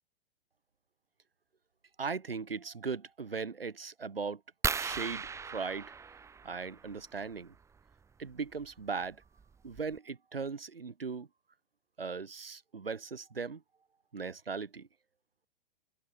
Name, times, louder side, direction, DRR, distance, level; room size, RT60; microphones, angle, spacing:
voice 1, 2.0-4.4 4.8-5.9 6.4-7.5 8.2-9.2 9.6-11.3 12.0-13.6 14.1-14.9, right 5 dB, 75° right, 4.6 m, -38 dB
sound 1, 4.6-7.0 8.6-8.8 9.4-9.5 9.8-10.0, right 5 dB, 10° right, 1.2 m, -36 dB
open air
figure-of-eight pair, 105°, 29 cm